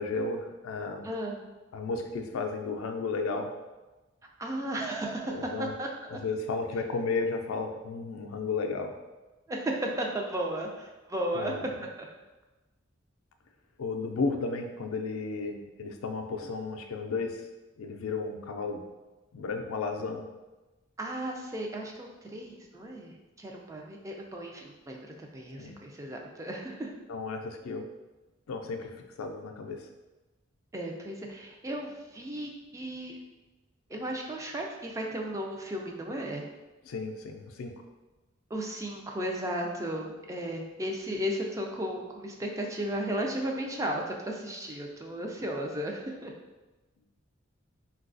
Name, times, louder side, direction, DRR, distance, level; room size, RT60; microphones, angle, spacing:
voice 1, 0.0-1.1 1.7-3.5 5.3-5.7 6.1-8.9 11.3-11.7 13.8-17.5 17.8-18.8 19.3-20.2 25.6-25.8 27.1-27.8 28.5-28.9 29.2-29.9 36.8-37.7, left 4 dB, 90° left, 4 dB, 0.4 m, -33 dB
voice 2, 1.0-1.4 4.4-6.2 9.5-11.5 12.0-12.1 21.0-26.9 30.7-33.2 33.9-36.5 38.5-46.3, right 1 dB, 15° right, 0 dB, 0.3 m, -35 dB
3.9 x 2.3 x 2.5 m, 1.1 s
head